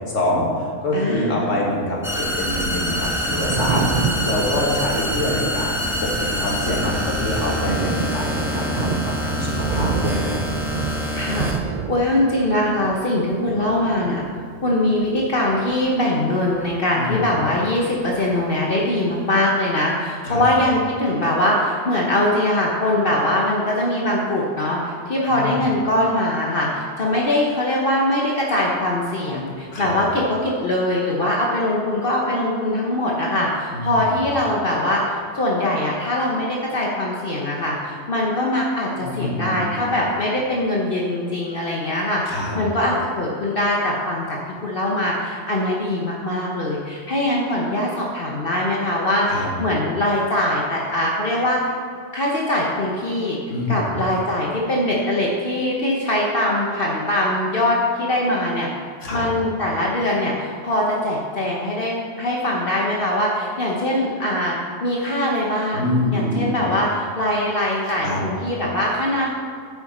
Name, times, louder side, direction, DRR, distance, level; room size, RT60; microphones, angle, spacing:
voice 1, 0.1-10.4 17.0-17.3 20.2-20.4 25.3-25.6 29.7-30.0 33.7-34.0 39.0-39.8 42.3-42.6 49.3-49.5 53.5-53.9 59.0-59.2 65.7-66.6 68.0-68.2, left 1 dB, 70° left, -2 dB, 2.1 m, -25 dB
voice 2, 0.9-1.5 11.1-11.5 11.9-14.2 14.6-51.7 52.1-53.4 53.7-58.7 59.1-69.3, left 1 dB, 50° left, -3 dB, 1.2 m, -22 dB
sound 1, 2.0-11.6, equal, ahead, 1.0 m, -26 dB
Thunder, 3.1-17.5 17.8-19.0, right 6 dB, 80° right, 0.3 m, -30 dB
10.5 x 7.3 x 4.3 m, 2.3 s
omnidirectional pair, 1.3 m